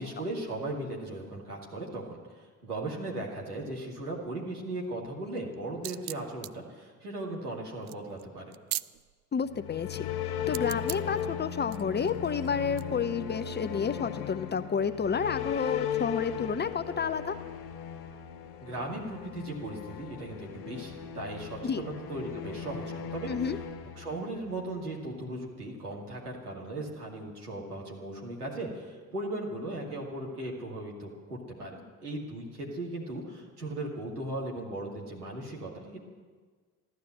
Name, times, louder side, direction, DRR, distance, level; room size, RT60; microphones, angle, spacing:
voice 1, 0.0-8.5 18.6-23.3 24.0-36.0, right 2 dB, 85° right, -2 dB, 2.5 m, -37 dB
sound 1, 5.4-9.2 10.5-11.2 11.7-12.8, right 17 dB, 40° right, 0.4 m, -40 dB
voice 2, 9.3-10.1 10.5-17.4 21.6-21.8 23.3-23.6, left 6 dB, 25° left, 11 dB, 0.7 m, -30 dB
sound 2, 9.4-24.7, left 9 dB, 60° left, 1.8 m, -37 dB
14.5 x 12.0 x 7.8 m, 1.5 s
figure-of-eight pair, 55°, 44 cm